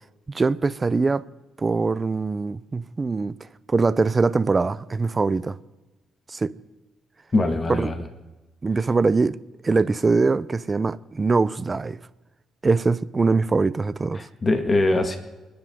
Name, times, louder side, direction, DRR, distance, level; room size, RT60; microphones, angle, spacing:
voice 1, 0.3-1.2 1.6-3.3 3.7-5.6 6.3-6.5 7.7-7.9 8.6-9.4 9.6-12.0 12.6-14.3, right 4 dB, 30° right, 0.7 m, -22 dB
voice 2, 7.3-8.0 14.1-15.2, left 2 dB, 30° left, 1.7 m, -22 dB
30.0 x 10.5 x 3.7 m
cardioid pair, 90°, 0 cm